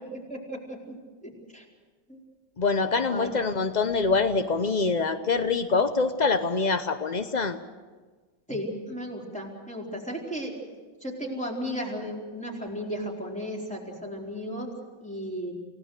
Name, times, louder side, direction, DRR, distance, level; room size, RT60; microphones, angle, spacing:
voice 1, 0.3-0.9 1.2-1.6 2.1-2.2 3.1-3.3 8.5-10.6 11.0-14.7 15.0-15.5, equal, 5° left, -2 dB, 4.4 m, -35 dB
voice 2, 2.6-7.6, left 4 dB, 70° left, 9 dB, 0.4 m, -25 dB
29.0 x 17.5 x 6.6 m, 1.4 s
omnidirectional pair, 2.0 m